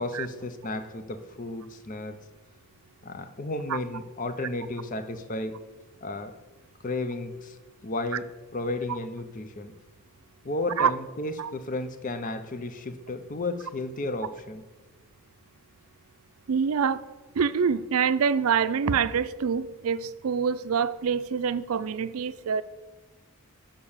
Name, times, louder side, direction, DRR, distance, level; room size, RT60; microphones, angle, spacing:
voice 1, 0.0-2.2 3.0-5.6 6.0-6.3 6.8-7.6 7.8-9.7 10.4-14.6, left 2 dB, 35° left, 10 dB, 0.6 m, -33 dB
voice 2, 16.5-17.0 17.4-22.6, right 6 dB, 80° right, 13 dB, 0.4 m, -25 dB
6.8 x 5.3 x 7.1 m, 1.2 s
head